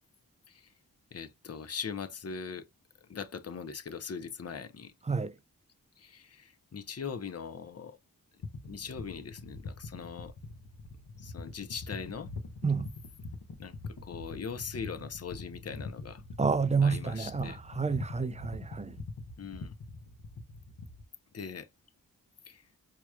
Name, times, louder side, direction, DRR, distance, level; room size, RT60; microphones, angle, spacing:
voice 1, 1.1-2.7 3.0-4.9 6.0-8.0 8.7-10.3 11.2-12.3 13.6-16.2 16.8-17.6 19.4-19.7 21.3-21.7 22.5-22.7, left 6 dB, 40° left, 0.6 m, -41 dB
sound 1, 8.4-21.0, left 3 dB, 75° left, 0.8 m, -43 dB
voice 2, 16.4-19.0, right 5 dB, 20° right, 0.4 m, -29 dB
4.7 x 2.9 x 2.2 m
wide cardioid pair, 50°, 37 cm